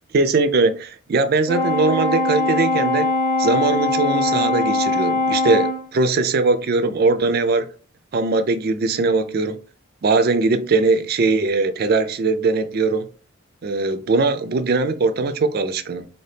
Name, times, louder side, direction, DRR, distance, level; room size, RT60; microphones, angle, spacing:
voice 1, 0.1-3.1 3.4-7.7 8.1-9.6 10.0-13.1 13.6-16.1, right 3 dB, 45° right, 0.4 m, -20 dB
Brass instrument, 1.5-5.9, left 2 dB, 20° left, 0.7 m, -21 dB
4.2 x 2.7 x 3.3 m
head